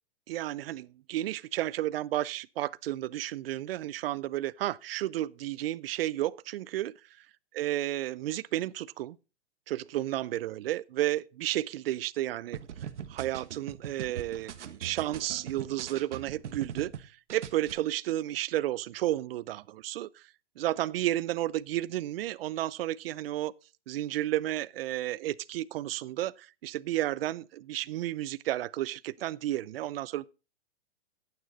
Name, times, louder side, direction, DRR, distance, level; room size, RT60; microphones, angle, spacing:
voice 1, 0.3-7.0 7.6-9.2 9.7-12.6 13.1-14.5 14.8-20.2 20.6-23.5 23.9-30.3, right 14 dB, 55° right, 0.5 m, -32 dB
sound 1, 12.5-17.0 17.3-17.7, right 9 dB, 90° right, 1.3 m, -40 dB
10.5 x 9.6 x 4.0 m
hypercardioid pair, 155°, 34 cm